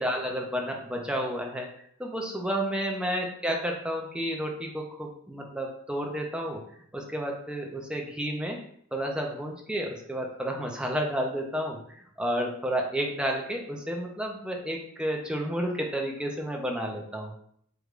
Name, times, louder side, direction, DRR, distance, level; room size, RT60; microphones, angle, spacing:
voice 1, 0.0-1.7 2.0-6.6 6.9-8.6 8.9-11.8 12.2-17.3, equal, 5° right, 0 dB, 0.6 m, -31 dB
4.8 x 3.3 x 2.5 m, 0.66 s
head